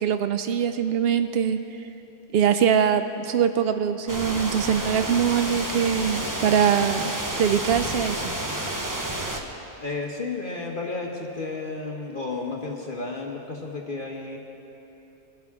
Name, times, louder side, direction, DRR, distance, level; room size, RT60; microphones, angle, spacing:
voice 1, 0.0-1.6 2.3-7.0 7.4-8.2, right 8 dB, 85° right, 9 dB, 0.5 m, -22 dB
sound 1, 4.1-9.4, right 1 dB, 15° right, 0.8 m, -30 dB
voice 2, 9.8-14.4, left 3 dB, 40° left, 0 dB, 1.2 m, -32 dB
23.0 x 12.5 x 3.6 m, 3.0 s
omnidirectional pair, 1.6 m